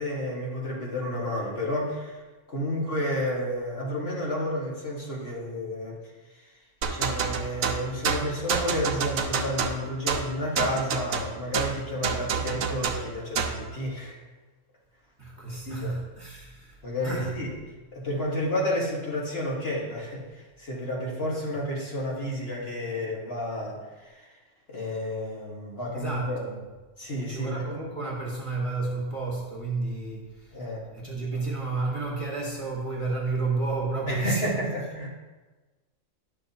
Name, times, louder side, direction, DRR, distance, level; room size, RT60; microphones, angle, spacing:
voice 1, 0.0-2.2 2.5-6.0 6.3-6.5 6.9-14.2 15.6-15.9 16.8-17.5 17.9-24.3 24.7-26.4 27.0-27.7 30.5-30.8 31.3-31.4 34.1-35.1, left 1 dB, 50° left, -4 dB, 1.6 m, -31 dB
sound 1, 6.8-13.7, right 6 dB, 85° right, 1.1 m, -28 dB
voice 2, 15.2-17.3 25.9-26.6 27.3-30.6 30.9-34.4, right 3 dB, 25° right, -4 dB, 1.2 m, -31 dB
10.5 x 6.4 x 2.8 m, 1.2 s
omnidirectional pair, 1.4 m